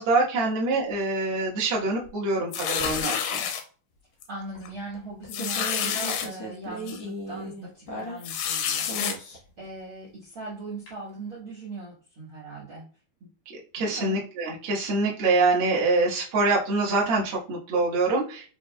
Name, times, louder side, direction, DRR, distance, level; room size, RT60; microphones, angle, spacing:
voice 1, 0.0-3.4 13.7-18.5, right 3 dB, 65° right, -5 dB, 1.4 m, -25 dB
sound 1, 2.5-3.6 4.2-4.4 4.7-4.8 5.3-6.3 6.9-7.0 8.2-9.1, left 8 dB, 85° left, 2.2 m, -28 dB
voice 2, 4.3-12.9 13.2-13.3 13.8-14.2, right 3 dB, 80° right, -6 dB, 1.2 m, -39 dB
sound 2, 4.5-8.5 8.8-9.6 10.9-11.0, equal, 65° left, 1.4 m, -37 dB
6.1 x 3.2 x 2.3 m, 0.40 s
omnidirectional pair, 4.6 m